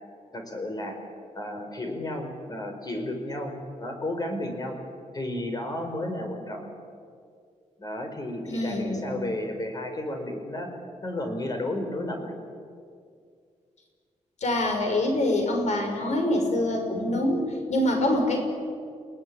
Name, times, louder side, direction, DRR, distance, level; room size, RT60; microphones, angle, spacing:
voice 1, 0.3-1.0 1.3-3.5 3.8-4.8 5.1-6.7 7.8-10.7 11.0-12.3, left 1 dB, 30° left, 4 dB, 5.2 m, -32 dB
voice 2, 8.4-9.3 14.4-18.4, left 1 dB, 65° left, 3 dB, 5.6 m, -25 dB
30.0 x 19.0 x 9.9 m, 2.2 s
wide cardioid pair, 145°, 13 cm